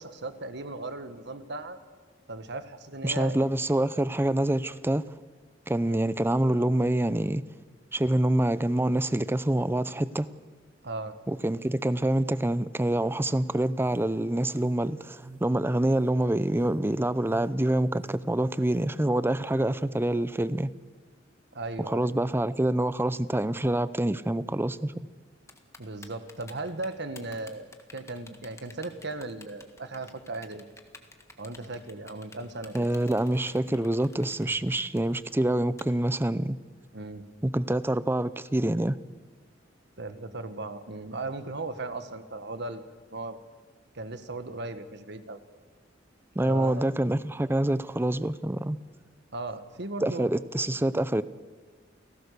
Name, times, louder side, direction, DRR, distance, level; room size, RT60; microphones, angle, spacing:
voice 1, 0.0-1.8 2.3-3.5 5.8-6.1 10.8-11.1 21.5-22.1 25.8-30.7 31.4-32.9 36.9-37.2 40.0-42.8 43.1-43.4 43.9-45.4 46.4-46.9 49.3-50.3, right 2 dB, 65° right, 1.6 m, -37 dB
voice 2, 3.0-5.0 5.7-7.4 7.9-10.3 11.3-20.7 21.9-24.9 32.7-36.6 37.4-39.0 46.4-48.8 50.0-51.2, right 1 dB, 10° right, 0.6 m, -26 dB
sound 1, 13.7-19.0, right 3 dB, 30° right, 1.7 m, -49 dB
Typing, 25.5-35.8, left 3 dB, 15° left, 1.7 m, -50 dB
29.0 x 17.5 x 6.8 m
head